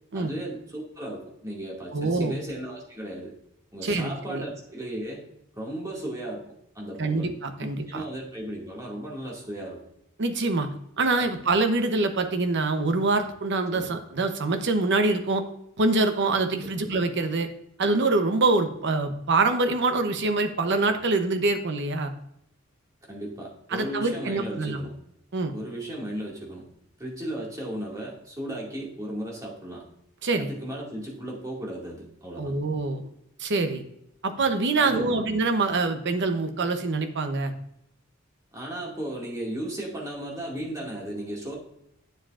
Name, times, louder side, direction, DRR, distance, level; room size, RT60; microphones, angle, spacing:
voice 1, 0.1-3.3 3.7-5.2 5.5-6.4 6.7-7.3 7.6-9.8 11.1-11.3 13.7-13.9 16.6-16.8 23.1-24.9 25.5-26.7 27.0-29.8 30.4-32.6 34.8-35.2 38.5-41.6, right 1 dB, 15° right, -3 dB, 2.2 m, -35 dB
voice 2, 1.9-2.4 3.8-4.4 7.0-8.0 10.2-10.7 11.0-15.4 15.8-17.5 17.8-22.1 23.7-24.8 25.3-25.5 30.2-30.5 32.4-33.1 33.4-33.8 34.2-37.5, right 3 dB, 55° right, 7 dB, 0.9 m, -25 dB
9.1 x 7.4 x 2.5 m, 0.75 s
head